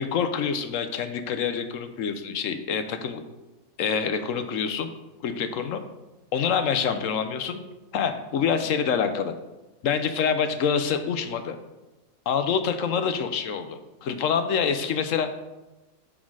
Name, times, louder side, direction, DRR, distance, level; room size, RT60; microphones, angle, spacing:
voice 1, 0.0-3.2 3.8-4.9 5.2-5.8 6.3-7.6 7.9-9.3 9.8-11.6 12.3-15.3, left 6 dB, 75° left, 8 dB, 1.1 m, -26 dB
9.5 x 4.3 x 4.7 m, 1.1 s
omnidirectional pair, 1.4 m